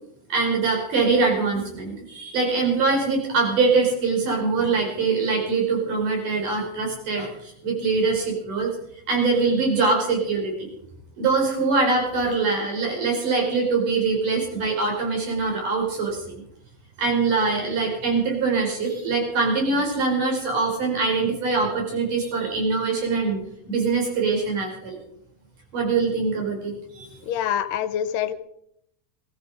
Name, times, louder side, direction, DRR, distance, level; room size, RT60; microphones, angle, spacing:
voice 1, 0.3-8.7 9.1-10.5 11.2-16.4 17.0-23.4 23.7-25.0 25.7-27.2, right 4 dB, 70° right, 0 dB, 6.6 m, -23 dB
voice 2, 27.3-28.3, left 10 dB, 85° left, 14 dB, 2.5 m, -25 dB
19.5 x 14.5 x 5.0 m, 0.74 s
omnidirectional pair, 3.9 m